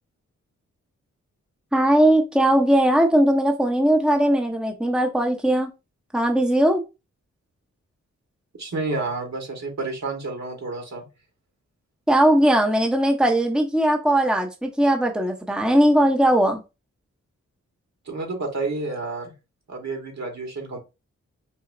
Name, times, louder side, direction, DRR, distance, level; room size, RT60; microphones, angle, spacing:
voice 1, 1.7-5.7 6.1-6.8 12.1-16.6, right 1 dB, 5° right, 2 dB, 0.8 m, -19 dB
voice 2, 8.6-11.1 18.0-19.3 19.7-20.8, right 3 dB, 60° right, 2 dB, 1.6 m, -30 dB
4.0 x 2.7 x 2.6 m, 0.27 s
cardioid pair, 55°, 31 cm